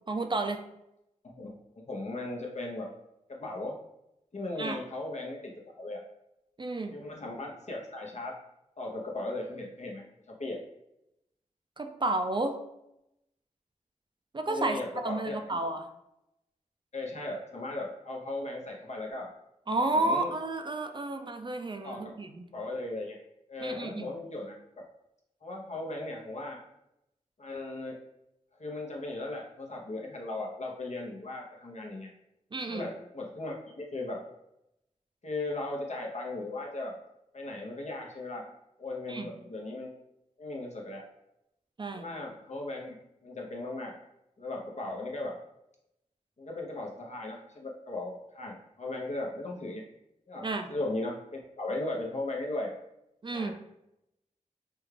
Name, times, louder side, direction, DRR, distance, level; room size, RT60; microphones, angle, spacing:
voice 1, 0.1-0.6 4.6-4.8 6.6-7.0 11.8-12.6 14.3-15.9 19.7-22.4 23.6-24.1 32.5-32.9 39.1-39.3 41.8-42.1 50.4-50.7 53.2-53.5, right 2 dB, 35° right, 5 dB, 0.4 m, -31 dB
voice 2, 1.8-2.9 3.3-3.8 4.3-6.0 6.9-8.4 8.8-10.6 14.5-15.4 16.9-19.3 19.9-20.3 21.8-22.1 22.5-23.2 23.5-24.5 25.4-26.6 27.4-28.0 28.6-32.1 32.7-34.2 35.2-36.9 37.3-38.5 38.8-39.9 40.4-41.0 41.9-43.0 43.2-43.9 44.4-45.3 46.4-49.8 50.3-52.7 53.3-53.5, left 2 dB, 60° left, -1 dB, 0.8 m, -37 dB
3.4 x 2.3 x 3.2 m, 0.84 s
wide cardioid pair, 50°, 13 cm